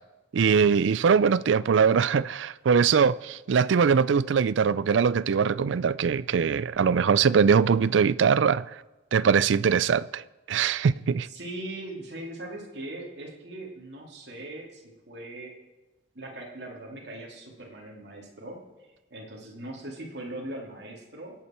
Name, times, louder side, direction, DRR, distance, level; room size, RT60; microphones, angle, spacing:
voice 1, 0.3-8.6 9.1-10.2 10.5-11.3, right 6 dB, 75° right, 0.4 m, -22 dB
voice 2, 11.2-15.5 16.1-18.6 19.1-21.3, right 1 dB, 60° right, 2.7 m, -40 dB
25.5 x 8.6 x 4.4 m
head